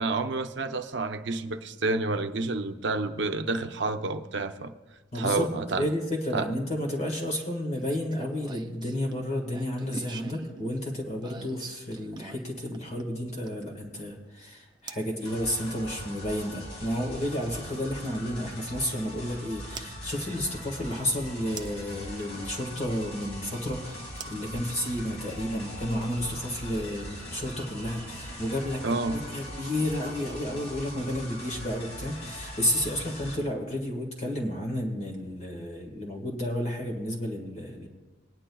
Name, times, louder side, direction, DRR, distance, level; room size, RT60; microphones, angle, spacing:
voice 1, 0.0-4.7 5.1-5.9 6.3-6.5 28.8-29.2, right 3 dB, 70° right, 7 dB, 0.7 m, -29 dB
voice 2, 5.1-5.5 5.7-28.8 29.1-37.9, left 1 dB, 35° left, 1 dB, 1.6 m, -31 dB
sound 1, 7.7-13.7 14.9-15.1 17.0-17.1 19.7-19.9 21.6-22.0 24.2-25.2, right 4 dB, 25° right, 0.5 m, -44 dB
sound 2, 15.2-33.4, equal, 70° left, 4.0 m, -41 dB
19.5 x 10.0 x 2.3 m, 1.2 s
head